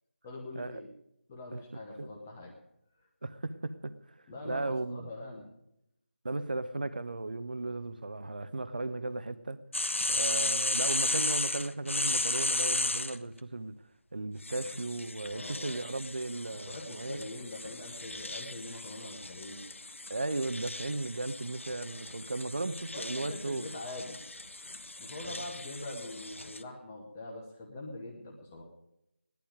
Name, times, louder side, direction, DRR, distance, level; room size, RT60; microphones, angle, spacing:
voice 1, 0.2-0.9 1.3-2.5 4.3-5.5 15.3-15.8 16.5-19.6 22.9-24.2 25.0-28.6, left 2 dB, 10° left, 0.9 m, -43 dB
voice 2, 3.2-3.9 4.4-5.1 6.2-9.6 10.1-13.7 14.1-17.3 20.1-23.7 25.2-25.5, right 2 dB, 45° right, 0.9 m, -36 dB
sound 1, 9.7-13.2 14.4-26.6, left 2 dB, 85° left, 1.1 m, -35 dB
16.5 x 12.0 x 5.0 m
figure-of-eight pair, 180°, 7 cm